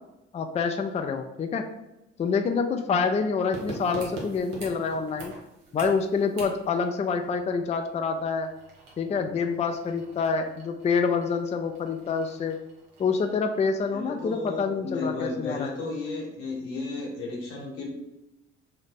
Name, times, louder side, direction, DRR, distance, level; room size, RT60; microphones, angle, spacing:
voice 1, 0.3-1.6 2.2-5.3 5.7-8.5 9.0-12.6 13.0-15.7, left 5 dB, 20° left, 5 dB, 0.4 m, -27 dB
sound 1, 3.5-14.0 14.3-14.4, right 2 dB, 80° right, 0.9 m, -44 dB
voice 2, 13.9-17.9, left 3 dB, 80° left, -2 dB, 1.1 m, -33 dB
3.1 x 2.0 x 4.2 m, 0.92 s
hypercardioid pair, 50°, 31 cm